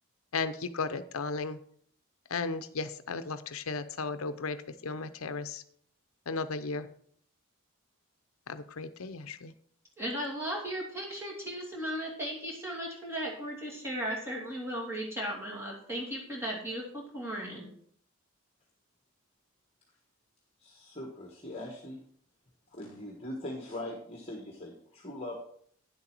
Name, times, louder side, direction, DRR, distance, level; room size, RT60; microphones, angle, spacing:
voice 1, 0.3-1.6 2.3-5.6 6.3-6.9 8.5-9.5, left 4 dB, 70° left, 11 dB, 0.7 m, -35 dB
voice 2, 10.0-17.7, equal, 10° right, -4 dB, 2.8 m, -36 dB
voice 3, 20.6-22.0 22.7-25.4, left 1 dB, 25° left, 0 dB, 1.4 m, -41 dB
10.0 x 7.8 x 4.6 m, 0.62 s
head